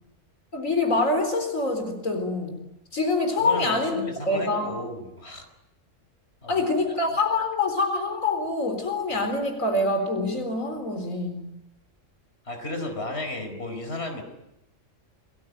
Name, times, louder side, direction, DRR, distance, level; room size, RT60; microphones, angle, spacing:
voice 1, 0.5-2.6 2.9-4.0 4.3-4.8 6.5-11.5, left 2 dB, 90° left, 5 dB, 4.4 m, -25 dB
voice 2, 3.4-5.4 6.4-6.7 9.1-9.2 12.4-14.2, left 2 dB, 55° left, 5 dB, 4.7 m, -34 dB
28.5 x 20.0 x 9.4 m, 0.89 s
omnidirectional pair, 1.3 m